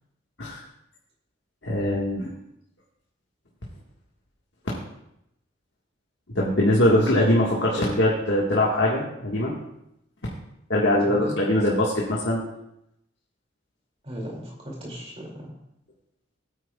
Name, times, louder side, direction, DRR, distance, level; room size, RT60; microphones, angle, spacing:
voice 1, 1.6-2.3 6.3-9.5 10.7-12.4, left 1 dB, 65° left, -4 dB, 1.7 m, -22 dB
voice 2, 10.9-11.3 14.0-15.6, equal, 30° right, -1 dB, 2.6 m, -37 dB
17.0 x 9.1 x 2.4 m, 0.81 s
head